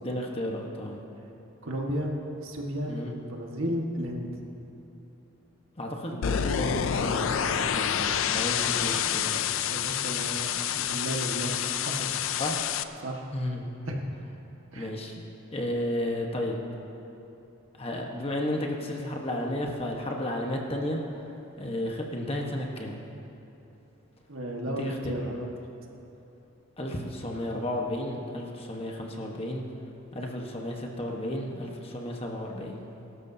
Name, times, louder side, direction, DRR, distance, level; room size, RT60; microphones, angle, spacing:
voice 1, 0.0-1.0 2.9-3.1 5.8-9.5 12.4-12.6 13.3-13.7 14.7-15.2 15.5-16.6 17.8-21.2 21.6-23.0 24.7-25.0 25.3-25.4 26.8-29.6 30.1-32.9, left 1 dB, 25° left, 0 dB, 1.2 m, -33 dB
voice 2, 1.6-2.1 2.4-4.4 8.8-9.4 9.7-12.1 13.0-13.3 13.9-14.0 14.7-14.9 24.3-25.5, equal, 65° right, 0 dB, 1.6 m, -33 dB
sound 1, 6.2-12.8, left 9 dB, 65° left, 0.4 m, -28 dB
22.5 x 12.5 x 2.8 m, 3.0 s
head